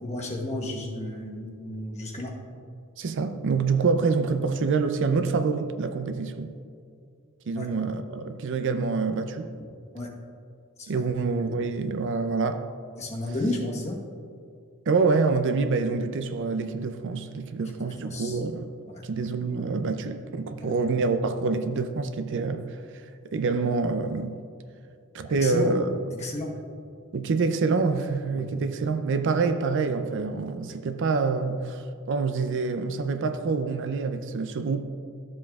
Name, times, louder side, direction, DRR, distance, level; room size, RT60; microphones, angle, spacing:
voice 1, 0.0-2.3 7.5-7.7 9.9-10.1 10.8-10.9 13.0-14.0 18.0-18.4 18.9-19.0 20.6-20.7 25.2-25.7 26.2-26.5 28.3-28.5, left 1 dB, 30° left, 1.2 m, -32 dB
voice 2, 3.0-6.5 7.5-9.5 10.9-12.7 13.3-13.4 14.9-18.7 19.0-22.8 23.2-24.4 25.1-26.0 27.1-34.8, right 4 dB, 60° right, 0.4 m, -26 dB
13.0 x 7.5 x 2.3 m
head